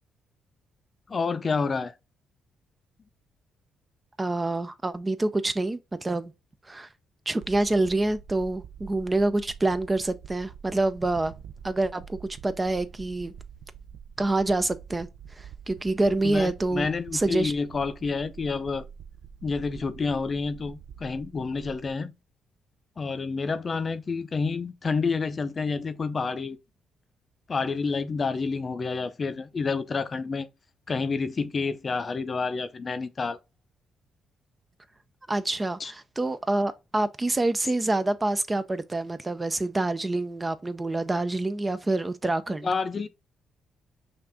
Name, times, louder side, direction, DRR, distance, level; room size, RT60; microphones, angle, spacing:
voice 1, 1.1-1.9 16.2-18.8 19.4-22.1 23.0-26.6 27.5-30.5 30.9-33.4 35.8-35.9 42.6-43.1, left 4 dB, 35° left, 0.6 m, -29 dB
voice 2, 4.2-6.3 6.7-6.9 7.3-11.3 11.6-13.3 14.2-16.9 17.1-17.5 35.3-42.7, right 2 dB, 20° right, 0.4 m, -27 dB
sound 1, 7.4-21.9, right 8 dB, 70° right, 0.5 m, -46 dB
5.8 x 2.5 x 3.5 m
cardioid pair, 90°, 0 cm